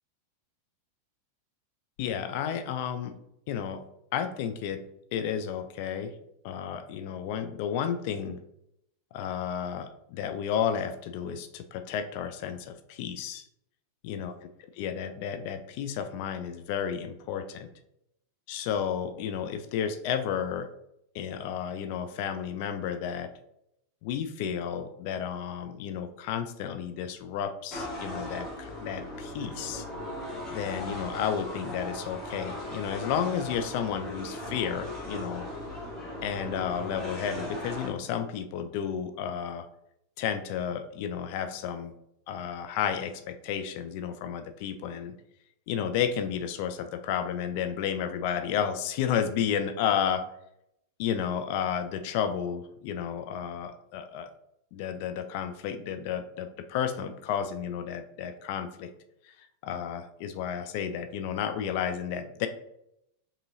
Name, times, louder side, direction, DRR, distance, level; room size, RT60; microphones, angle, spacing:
voice 1, 2.0-3.2 3.5-3.8 4.1-4.9 5.1-6.1 6.4-8.4 9.1-13.4 14.0-14.3 14.8-17.7 18.5-20.7 21.1-23.3 24.0-29.9 30.5-35.5 36.2-39.7 40.2-41.9 42.3-45.1 45.7-50.3 51.0-54.3 54.7-58.9 59.6-62.5, left 8 dB, 45° left, 8 dB, 0.4 m, -32 dB
sound 1, 27.7-37.9, left 1 dB, 20° left, 1.5 m, -38 dB
5.2 x 2.7 x 2.7 m, 0.77 s
figure-of-eight pair, 90°, 0 cm